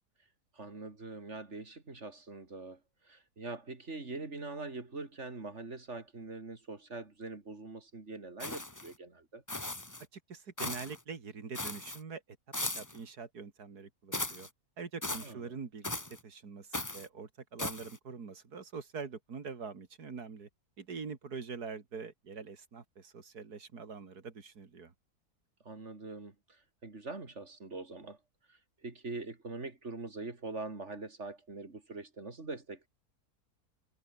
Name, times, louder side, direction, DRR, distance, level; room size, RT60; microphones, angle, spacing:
voice 1, 0.5-9.4 15.1-15.5 25.6-28.2 28.5-32.9, right 3 dB, 45° right, 3.4 m, -43 dB
sound 1, 8.4-8.9 9.5-10.0 10.6-11.0 11.5-12.0 12.5-13.0 14.1-14.5 15.0-15.3 15.8-16.2 16.7-17.1 17.6-18.0, left 2 dB, 10° left, 1.4 m, -38 dB
voice 2, 10.1-12.4 12.6-14.5 14.8-20.5 20.8-24.9, right 5 dB, 80° right, 2.9 m, -44 dB
omnidirectional pair, 1.6 m